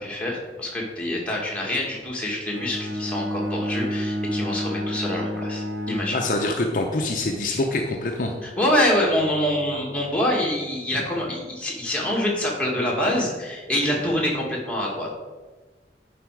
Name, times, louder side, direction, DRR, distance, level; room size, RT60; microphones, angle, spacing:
voice 1, 0.0-6.2 8.4-15.1, left 1 dB, 5° left, -3 dB, 1.8 m, -25 dB
Bowed string instrument, 2.5-6.8, equal, 85° right, 1.0 m, -29 dB
voice 2, 6.1-8.3, left 2 dB, 50° left, 2 dB, 0.7 m, -25 dB
10.0 x 5.0 x 4.7 m, 1.3 s
head